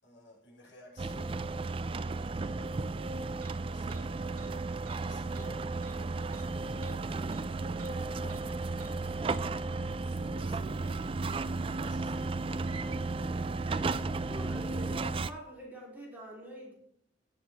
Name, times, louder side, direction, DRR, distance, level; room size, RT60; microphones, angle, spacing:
voice 1, 0.0-1.4 2.1-3.0 3.5-8.7 9.0-9.7 10.0-12.4 12.8-14.0 14.3-14.4, left 1 dB, 70° left, -2 dB, 5.5 m, -55 dB
sound 1, 1.0-15.3, right 3 dB, 25° right, 0.4 m, -34 dB
sound 2, 3.4-3.5 3.9-4.0 4.4-4.5 4.8-5.0 5.3-5.5 5.8-6.0 6.3-6.5 6.8-7.0 7.3-7.4 7.8-7.9 8.3-8.4 8.8-8.9 9.3-9.4, right 5 dB, 50° right, 4.0 m, -53 dB
voice 2, 13.7-16.7, equal, 10° right, -4 dB, 3.5 m, -46 dB
17.5 x 7.4 x 3.5 m, 0.70 s
head